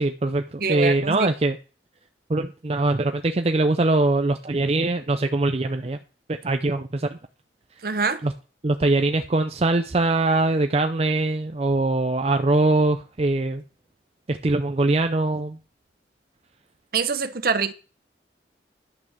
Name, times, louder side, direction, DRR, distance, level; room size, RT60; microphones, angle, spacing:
voice 1, 0.0-1.6 2.3-6.0 6.3-7.2 8.2-8.3 8.6-13.6 14.3-15.6, right 2 dB, 35° right, 0.5 m, -22 dB
voice 2, 0.6-1.3 7.8-8.2 16.9-17.7, right 4 dB, 55° right, 0.9 m, -24 dB
11.0 x 5.9 x 6.5 m
head